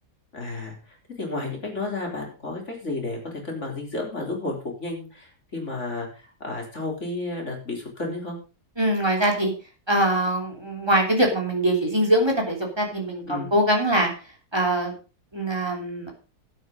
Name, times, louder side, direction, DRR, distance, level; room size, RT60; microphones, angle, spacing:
voice 1, 0.3-0.8 1.2-8.4 13.3-13.5, left 2 dB, 45° left, 0 dB, 3.9 m, -32 dB
voice 2, 8.8-9.5 9.9-14.1 14.5-14.9 15.3-16.1, right 1 dB, 15° right, 1 dB, 3.2 m, -23 dB
12.0 x 8.8 x 5.2 m, 0.35 s
omnidirectional pair, 1.7 m